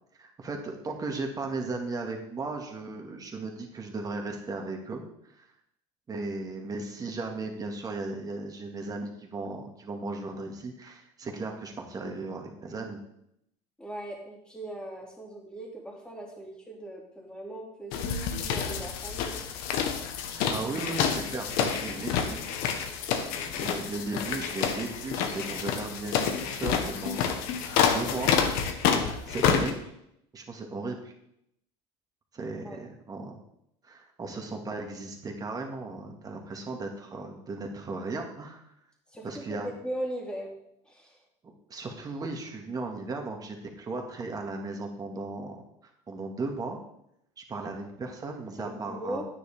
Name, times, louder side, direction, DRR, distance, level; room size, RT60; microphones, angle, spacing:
voice 1, 0.2-5.0 5.4-5.5 6.1-13.0 20.3-22.4 23.6-28.4 29.3-29.9 30.3-31.1 32.3-33.4 33.8-38.6 39.2-39.7 41.4-45.6 46.1-46.8 47.4-49.2, right 3 dB, 25° right, 2 dB, 2.0 m, -36 dB
voice 2, 13.8-19.4 32.6-32.8 39.1-40.5 40.9-41.2 48.6-49.3, right 1 dB, 5° left, -2 dB, 2.8 m, -39 dB
sound 1, 17.9-29.7, left 7 dB, 70° left, 1.4 m, -28 dB
9.7 x 9.4 x 3.7 m, 0.77 s
supercardioid pair, 120°, 15 cm